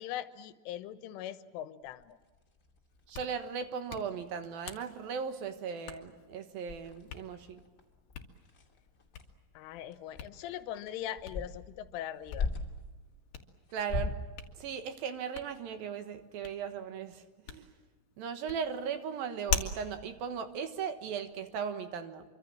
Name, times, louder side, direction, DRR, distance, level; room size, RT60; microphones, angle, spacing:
voice 1, 0.0-2.2 9.6-12.5, left 11 dB, 85° left, 12 dB, 3.6 m, -41 dB
sound 1, 1.8-3.3 3.9-4.0 4.2-4.5 4.8-4.9 5.2-5.7 6.1-6.2 6.7-12.9 13.7-14.3, left 3 dB, 25° left, 2.0 m, -40 dB
Hands, 2.9-21.4, left 8 dB, 55° left, 3.0 m, -45 dB
voice 2, 3.1-7.6 13.7-14.1 14.6-17.7 18.2-22.2, right 7 dB, 65° right, 8 dB, 2.5 m, -37 dB
26.5 x 25.0 x 7.4 m, 1.3 s
omnidirectional pair, 5.6 m